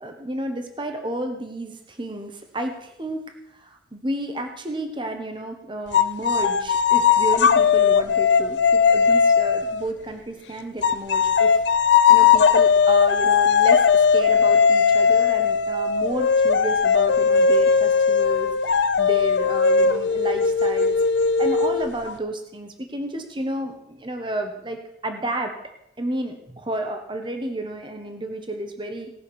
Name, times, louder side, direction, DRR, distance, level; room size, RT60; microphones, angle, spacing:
voice 1, 0.0-3.2 3.5-11.8 12.1-21.0 21.4-25.5 26.0-29.1, right 1 dB, 30° right, 5 dB, 1.2 m, -31 dB
sound 1, 5.9-9.8 10.8-22.1, left 6 dB, 85° left, 0.6 m, -18 dB
18.5 x 6.4 x 6.3 m, 0.81 s
head